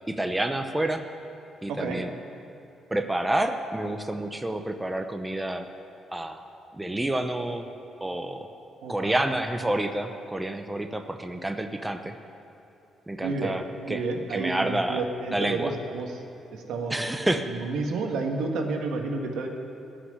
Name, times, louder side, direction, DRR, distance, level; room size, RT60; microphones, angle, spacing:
voice 1, 0.1-1.1 1.6-2.1 2.9-5.7 6.1-6.4 6.8-7.7 8.0-8.5 8.9-12.1 13.1-14.0 14.3-15.0 15.3-15.7 16.9-17.5, right 1 dB, 10° right, 7 dB, 0.7 m, -29 dB
voice 2, 1.7-2.0 8.8-9.2 13.2-13.5 13.9-16.1 16.5-17.0 17.5-19.5, right 3 dB, 80° right, 3 dB, 1.6 m, -30 dB
15.0 x 5.9 x 9.8 m, 2.9 s
cardioid pair, 90°, 0 cm